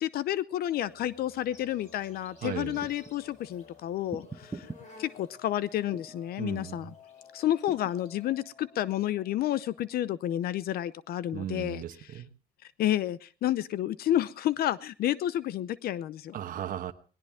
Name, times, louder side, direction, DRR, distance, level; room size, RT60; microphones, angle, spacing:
voice 1, 0.0-4.7 5.0-6.9 7.3-11.8 12.8-16.4, left 12 dB, 65° left, 17 dB, 0.7 m, -30 dB
Insect, 0.8-8.4, left 3 dB, 45° left, 6.6 m, -58 dB
sound 1, 0.9-10.1, left 4 dB, 30° left, 4.2 m, -56 dB
voice 2, 2.4-2.8 6.4-6.8 11.3-12.3 16.3-16.9, right 10 dB, 55° right, 5 dB, 1.2 m, -36 dB
sound 2, 2.6-3.2 4.1-4.8 5.9-6.2 7.7-8.0, right 3 dB, 15° right, 1.6 m, -42 dB
19.5 x 18.0 x 3.5 m, 0.39 s
cardioid pair, 110°, 17 cm